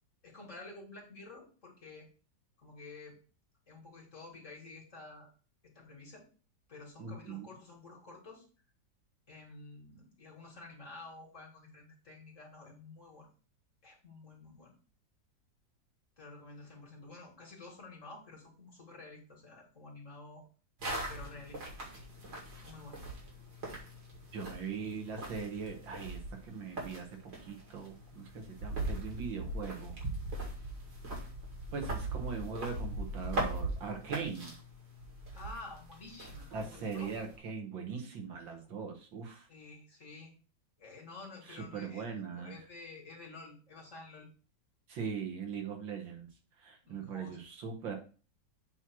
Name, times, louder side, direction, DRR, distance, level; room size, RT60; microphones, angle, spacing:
voice 1, 0.2-2.1 2.6-3.2 3.7-5.3 5.6-6.3 6.7-8.5 9.3-13.3 13.8-14.7 16.2-20.4 21.1-21.6 22.6-23.0 35.3-37.1 39.5-40.4 40.8-42.1 42.3-44.3 46.8-47.4, left 3 dB, 40° left, -2 dB, 2.4 m, -50 dB
voice 2, 7.0-7.5 24.3-27.1 27.4-29.9 31.7-34.5 36.5-39.5 41.5-42.6 44.9-46.3 46.6-47.9, right 5 dB, 90° right, 3 dB, 2.2 m, -40 dB
sound 1, 20.8-37.4, right 2 dB, 75° right, 2.9 m, -41 dB
7.7 x 3.1 x 6.1 m, 0.37 s
omnidirectional pair, 2.0 m